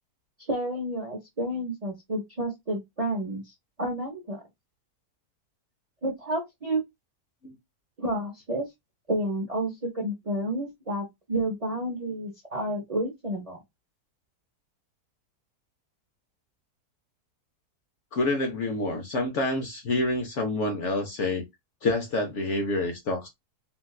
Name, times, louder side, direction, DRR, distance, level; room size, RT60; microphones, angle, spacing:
voice 1, 0.5-3.4 3.8-4.4 6.0-6.8 8.0-8.6 9.1-13.6, right 1 dB, 40° right, 0.5 m, -30 dB
voice 2, 18.1-21.4 21.8-23.3, left 2 dB, 60° left, 0.8 m, -27 dB
3.8 x 2.3 x 2.3 m
omnidirectional pair, 1.7 m